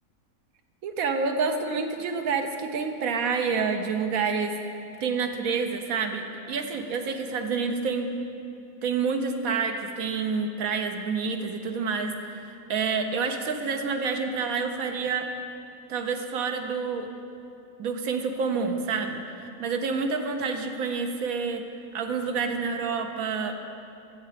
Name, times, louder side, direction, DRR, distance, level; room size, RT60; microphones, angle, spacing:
voice 1, 0.8-4.6 5.0-8.1 8.8-15.3 15.9-17.1 17.8-19.2 19.6-21.6 21.9-23.6, right 5 dB, 70° right, 5 dB, 1.1 m, -28 dB
13.0 x 7.8 x 5.0 m, 2.7 s
omnidirectional pair, 1.6 m